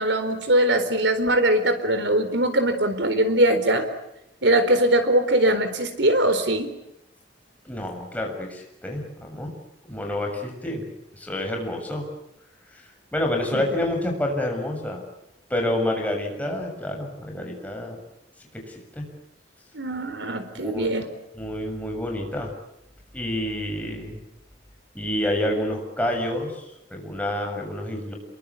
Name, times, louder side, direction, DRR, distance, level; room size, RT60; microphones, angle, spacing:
voice 1, 0.0-3.9 4.4-6.7 13.5-13.6 19.7-21.0, right 1 dB, 70° right, 9 dB, 4.2 m, -21 dB
voice 2, 7.6-9.5 9.9-10.8 11.1-12.1 12.7-12.8 13.1-15.0 15.5-18.0 18.5-19.1 20.5-20.9 21.3-22.5 23.1-24.2 24.9-28.1, left 1 dB, 10° left, 1 dB, 7.1 m, -28 dB
27.5 x 23.0 x 8.4 m, 0.83 s
head